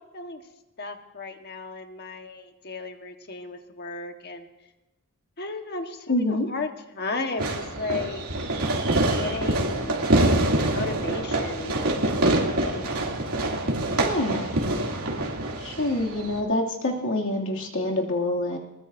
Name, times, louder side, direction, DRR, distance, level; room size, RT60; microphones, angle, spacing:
voice 1, 0.8-4.5 5.4-8.2 9.2-10.0 10.6-12.0 12.4-12.9, left 3 dB, 45° left, 5 dB, 1.4 m, -35 dB
voice 2, 6.1-6.5 14.0-14.6 15.6-18.6, left 1 dB, 60° left, 0 dB, 2.6 m, -26 dB
Fireworks, 7.4-16.4, right 1 dB, 75° right, 2.7 m, -25 dB
21.5 x 20.0 x 2.7 m, 1.0 s
head